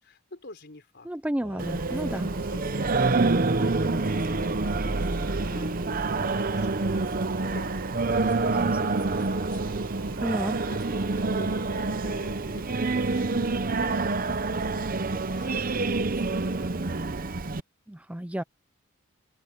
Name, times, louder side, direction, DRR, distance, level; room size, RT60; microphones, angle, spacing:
voice 1, 0.0-1.1 1.9-7.9 8.2-17.2, left 2 dB, 50° left, 4.1 m, -48 dB
voice 2, 1.1-2.3 8.5-8.9 10.2-10.6 17.9-18.4, right 1 dB, 5° right, 0.4 m, -31 dB
Singing / Musical instrument, 1.4-14.0, right 3 dB, 65° right, 1.7 m, -40 dB
Singing, 1.6-17.6, right 3 dB, 40° right, 0.8 m, -27 dB
open air
head